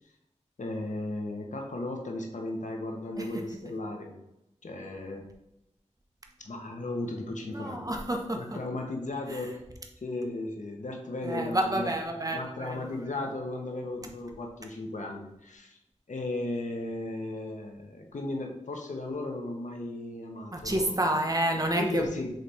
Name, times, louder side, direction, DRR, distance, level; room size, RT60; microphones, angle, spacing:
voice 1, 0.6-4.1 4.6-5.2 6.4-7.9 8.4-9.6 10.0-11.9 12.3-15.8 16.1-20.9 21.7-22.3, left 2 dB, 80° left, 2 dB, 1.1 m, -35 dB
voice 2, 7.4-8.6 9.3-9.4 11.2-13.1 20.5-22.1, right 1 dB, 30° right, 2 dB, 1.3 m, -30 dB
7.9 x 3.3 x 4.3 m, 0.86 s
cardioid pair, 45°, 12 cm